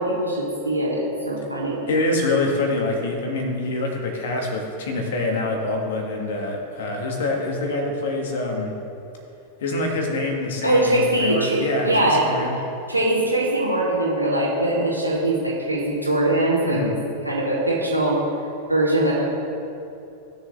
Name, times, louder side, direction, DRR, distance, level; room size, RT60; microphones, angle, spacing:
voice 1, 0.0-1.9 10.6-12.2 12.9-16.9 17.2-18.2 18.7-19.2, right 1 dB, 85° right, -5 dB, 2.6 m, -22 dB
voice 2, 1.9-8.7 9.6-12.6 16.6-17.0, left 2 dB, 60° left, 1 dB, 1.9 m, -25 dB
18.0 x 6.9 x 3.3 m, 2.7 s
figure-of-eight pair, 90°, 0 cm